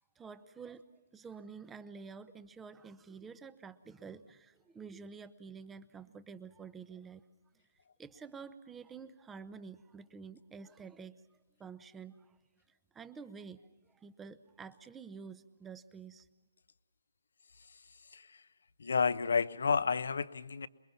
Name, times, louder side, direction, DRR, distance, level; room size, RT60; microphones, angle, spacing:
voice 1, 0.2-7.2 8.0-11.2 11.6-12.4 12.7-13.6 13.9-16.3, right 5 dB, 10° right, 14 dB, 0.9 m, -49 dB
voice 2, 18.8-20.7, left 5 dB, 70° left, 15 dB, 0.9 m, -30 dB
27.0 x 22.0 x 5.8 m, 1.3 s
hypercardioid pair, 145°, 0 cm